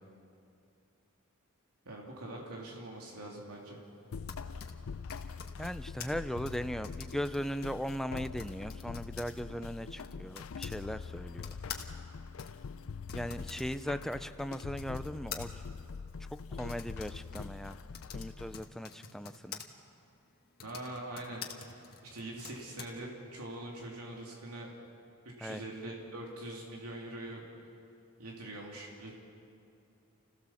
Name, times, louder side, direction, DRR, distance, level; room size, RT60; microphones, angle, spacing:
voice 1, 1.8-3.8 20.6-24.7 25.4-27.4 28.2-29.1, right 1 dB, 85° right, -2 dB, 2.8 m, -43 dB
Typing, 4.0-10.8 11.4-19.7 20.4-22.9, left 7 dB, 45° left, 1.5 m, -48 dB
sound 1, 4.1-18.6, left 5 dB, 65° left, 0.5 m, -44 dB
voice 2, 5.6-11.6 13.1-15.5 16.5-17.8 18.1-19.6 25.4-25.6, equal, ahead, 11 dB, 0.4 m, -38 dB
30.0 x 15.5 x 7.1 m, 2.6 s
head